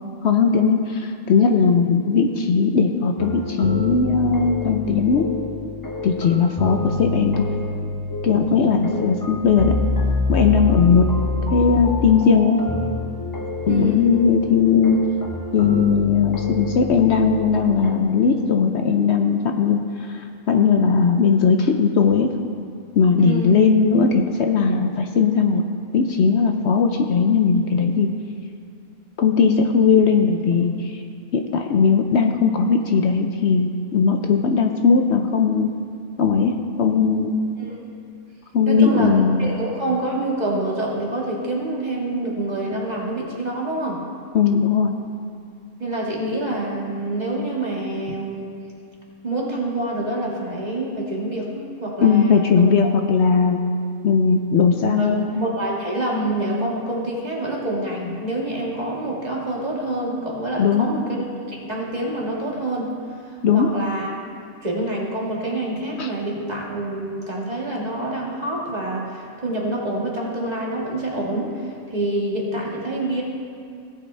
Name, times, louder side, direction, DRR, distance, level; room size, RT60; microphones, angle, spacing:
voice 1, 0.2-5.3 6.0-7.5 8.2-9.8 10.3-11.1 11.5-12.6 13.7-15.0 15.5-19.8 20.1-22.3 22.9-25.6 25.9-28.1 29.2-30.7 31.3-35.7 36.2-37.3 38.5-39.6 44.3-44.9 52.0-53.6 54.0-55.2 60.6-60.9 63.4-63.7 66.0-66.1, left 5 dB, 60° left, 4 dB, 0.7 m, -18 dB
sound 1, 3.2-17.9, left 3 dB, 25° left, 0.5 m, -27 dB
voice 2, 13.7-14.1 23.2-23.6 37.6-37.7 38.7-39.1 39.4-44.0 45.8-48.5 49.2-52.7 55.0-62.9 63.3-64.1 64.6-73.2, right 1 dB, 30° right, -3 dB, 1.8 m, -26 dB
17.5 x 7.8 x 3.3 m, 2.3 s
omnidirectional pair, 1.6 m